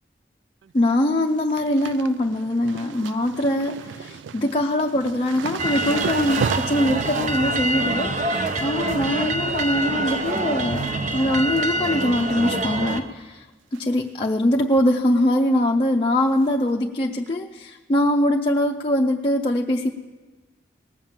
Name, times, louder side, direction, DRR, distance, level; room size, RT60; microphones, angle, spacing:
tree-falling-down-in-forrest, 0.6-0.9 1.2-10.4 10.8-11.2 11.5-12.3 12.7-12.8 13.7-14.0 14.3-14.4 14.7-14.8 16.4-16.5 17.3-17.4, right 7 dB, 85° right, 0.3 m, -36 dB
voice 1, 0.7-8.2 8.6-13.5 13.7-19.9, left 1 dB, 30° left, 1 dB, 0.5 m, -22 dB
sound 1, 5.6-13.0, right 2 dB, 40° right, 0.6 m, -25 dB
19.0 x 7.1 x 7.3 m, 1.3 s
head